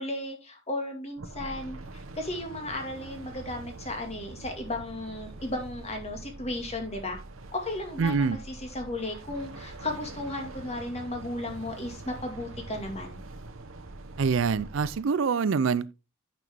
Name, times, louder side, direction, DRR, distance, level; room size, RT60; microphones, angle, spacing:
voice 1, 0.0-7.2 7.5-13.2, left 1 dB, 30° left, 2.1 m, -35 dB
sound 1, 1.2-15.0, right 2 dB, 85° right, 1.1 m, -44 dB
voice 2, 8.0-8.4 14.2-15.9, right 5 dB, 65° right, 0.4 m, -25 dB
9.1 x 5.9 x 3.5 m
head